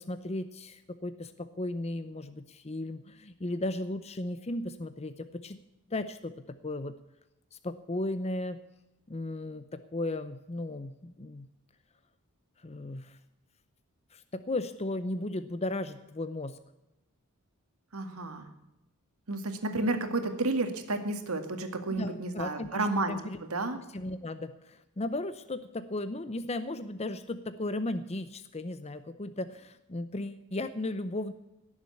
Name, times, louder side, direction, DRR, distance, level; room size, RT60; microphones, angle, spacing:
voice 1, 0.0-5.6 5.9-6.9 7.5-8.6 9.1-11.5 12.6-13.2 14.1-16.6 21.9-23.4 23.9-31.3, left 2 dB, 30° left, 11 dB, 0.7 m, -36 dB
voice 2, 17.9-18.5 19.3-23.8, right 2 dB, 75° right, 7 dB, 2.1 m, -31 dB
17.5 x 7.3 x 8.4 m, 0.95 s
head